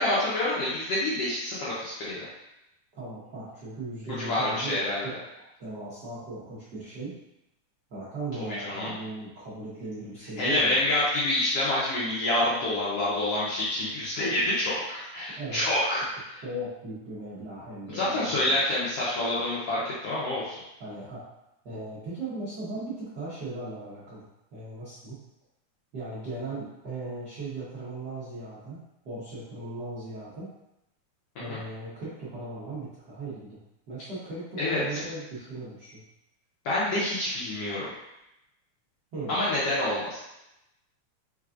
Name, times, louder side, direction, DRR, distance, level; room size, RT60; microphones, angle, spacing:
voice 1, 0.0-2.2 4.0-5.1 8.6-8.9 10.4-16.0 16.3-16.4 17.9-20.6 31.5-31.6 34.6-35.0 36.6-37.9 39.3-40.2, left 1 dB, 70° left, -8 dB, 1.5 m, -27 dB
voice 2, 2.9-5.1 5.6-7.1 7.9-10.7 15.4-15.6 16.4-18.6 20.8-21.3 21.6-24.3 24.5-25.2 25.9-28.8 29.0-30.5 31.4-33.6 33.9-36.0 39.1-39.3, right 2 dB, 85° right, -11 dB, 0.9 m, -38 dB
4.6 x 3.9 x 2.5 m, 0.88 s
omnidirectional pair, 3.7 m